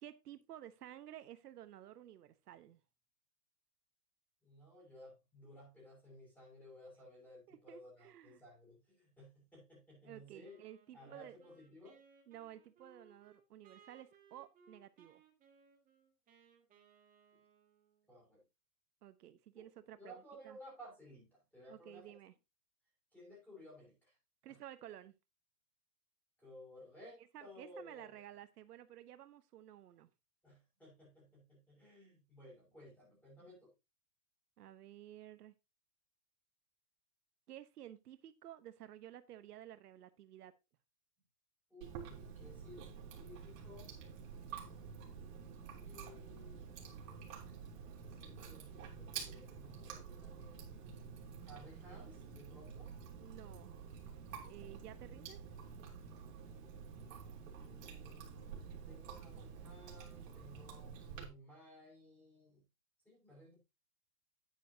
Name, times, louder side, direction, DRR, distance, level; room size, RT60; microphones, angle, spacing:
voice 1, 0.0-2.8 7.5-8.4 10.0-11.4 12.3-15.2 19.0-20.6 21.7-22.3 24.4-25.1 27.3-30.1 34.6-35.5 37.5-40.5 53.2-53.7 54.3-55.4, right 12 dB, 80° right, 11 dB, 1.1 m, -53 dB
voice 2, 4.4-10.6 10.9-12.0 18.1-18.4 19.5-19.7 20.0-22.1 23.1-24.2 24.5-24.6 26.4-28.2 30.4-33.7 41.7-42.9 43.2-44.0 45.7-46.7 48.0-50.8 51.4-52.9 57.6-62.6 63.0-63.6, left 1 dB, 5° left, -4 dB, 5.9 m, -57 dB
Wind instrument woodwind instrument, 10.4-18.1, right 6 dB, 20° right, 2.0 m, -66 dB
Chewing mastication, 41.8-61.3, right 6 dB, 55° right, 3.5 m, -49 dB
9.7 x 9.4 x 2.8 m, 0.24 s
hypercardioid pair, 155°, 46 cm